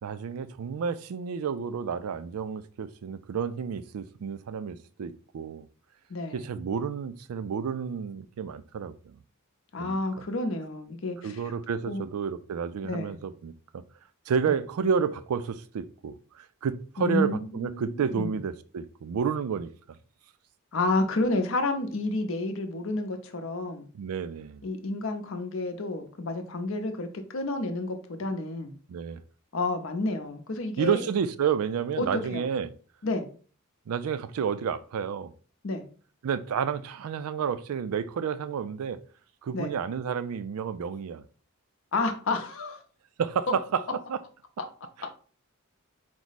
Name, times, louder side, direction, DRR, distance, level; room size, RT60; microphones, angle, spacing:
voice 1, 0.0-5.7 6.3-9.2 9.8-10.0 11.2-13.8 14.3-19.7 23.9-24.6 28.9-29.2 30.8-32.7 33.9-35.3 36.2-39.0 39.4-41.2 43.2-44.2, right 6 dB, 85° right, 0.4 m, -30 dB
voice 2, 6.1-6.4 9.7-11.4 11.9-12.0 12.9-13.2 14.5-14.6 17.0-18.4 20.7-23.8 24.6-28.7 29.5-31.1 32.0-32.4 33.0-33.3 35.6-35.8 39.5-39.7 41.9-42.8, left 2 dB, 65° left, 0.7 m, -30 dB
4.6 x 2.0 x 4.0 m
head